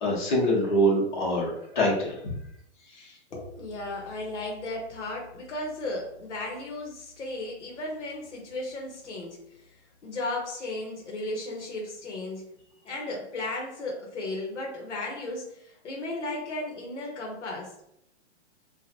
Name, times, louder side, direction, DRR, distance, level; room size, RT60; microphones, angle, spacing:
voice 1, 0.0-2.3 2.9-3.1, equal, 45° left, -5 dB, 1.2 m, -25 dB
voice 2, 3.3-12.4 12.8-17.7, left 2 dB, 80° left, -1 dB, 1.1 m, -35 dB
2.9 x 2.5 x 2.8 m, 0.76 s
hypercardioid pair, 175°, 35 cm